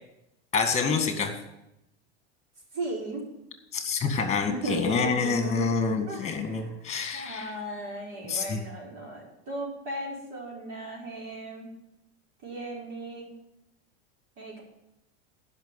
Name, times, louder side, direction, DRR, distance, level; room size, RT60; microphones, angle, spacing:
voice 1, 0.5-1.3 3.7-7.5 8.3-8.6, left 5 dB, 20° left, 6 dB, 1.9 m, -27 dB
voice 2, 2.7-3.2 4.5-5.8 6.1-6.8 7.1-11.7 12.4-13.3 14.4-14.6, right 2 dB, 55° right, -3 dB, 5.1 m, -36 dB
10.5 x 6.0 x 8.9 m, 0.87 s
supercardioid pair, 135°, 34 cm